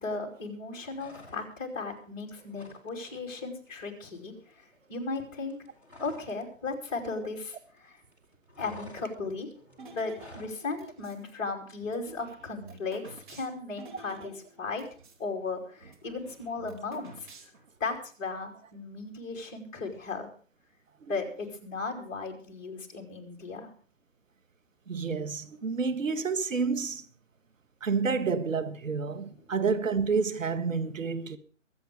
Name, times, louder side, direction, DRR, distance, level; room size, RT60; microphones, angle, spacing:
voice 1, 0.0-5.6 6.0-8.0 8.6-9.5 9.9-14.9 15.2-17.3 17.8-20.3 21.1-23.7, left 3 dB, 15° left, 2.8 m, -36 dB
sound 1, 0.9-1.7 2.0-2.9 3.2-3.4 3.7-6.4 6.7-10.6, left 1 dB, 5° right, 1.5 m, -50 dB
sound 2, 9.8-11.2 11.8-15.2 15.5-15.6 15.8-17.8, right 2 dB, 40° right, 2.8 m, -50 dB
voice 2, 24.9-27.1 27.8-31.4, right 5 dB, 80° right, 1.7 m, -29 dB
23.5 x 8.0 x 4.9 m
hypercardioid pair, 165°, 39 cm